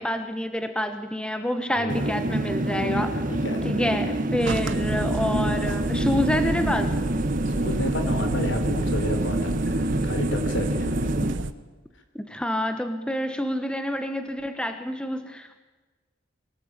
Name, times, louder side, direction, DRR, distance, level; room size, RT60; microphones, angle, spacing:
voice 1, 0.0-3.1 3.6-7.0 12.1-15.6, left 1 dB, 5° left, 8 dB, 1.3 m, -28 dB
voice 2, 1.8-2.1 3.0-4.1 7.5-11.2, left 1 dB, 75° left, 7 dB, 3.7 m, -32 dB
sound 1, 1.9-11.3, right 1 dB, 45° right, 1.2 m, -27 dB
sound 2, 4.4-11.5, right 2 dB, 80° right, 1.1 m, -30 dB
23.0 x 18.5 x 9.0 m, 1.3 s
head